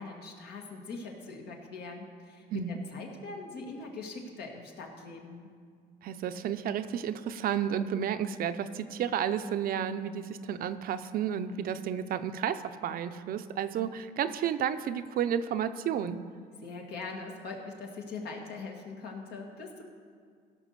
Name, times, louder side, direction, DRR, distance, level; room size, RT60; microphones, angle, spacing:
voice 1, 0.0-5.5 16.6-19.8, left 3 dB, 70° left, 1 dB, 2.0 m, -42 dB
voice 2, 6.0-16.2, right 9 dB, 60° right, 10 dB, 0.6 m, -32 dB
16.5 x 5.5 x 6.7 m, 2.1 s
cardioid pair, 110°, 17 cm